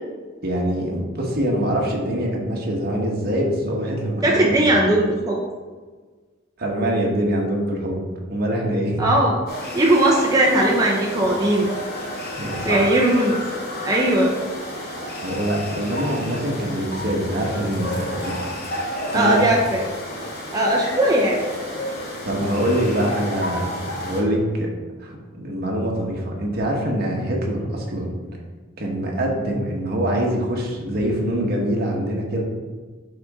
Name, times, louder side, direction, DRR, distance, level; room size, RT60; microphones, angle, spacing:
voice 1, 0.4-4.7 6.6-8.0 8.3-9.1 12.4-13.0 15.2-18.4 19.1-19.6 22.2-23.7 24.0-24.7 25.0-28.1 28.8-32.4, right 1 dB, 55° right, -1 dB, 1.5 m, -24 dB
voice 2, 4.2-5.4 9.0-9.4 9.7-11.7 12.6-13.3 13.8-14.3 19.1-19.8 20.5-21.4, right 1 dB, 20° right, -2 dB, 0.8 m, -18 dB
sound 1, 9.5-24.2, left 1 dB, 50° left, 2.1 m, -31 dB
10.5 x 4.2 x 3.7 m, 1.4 s
head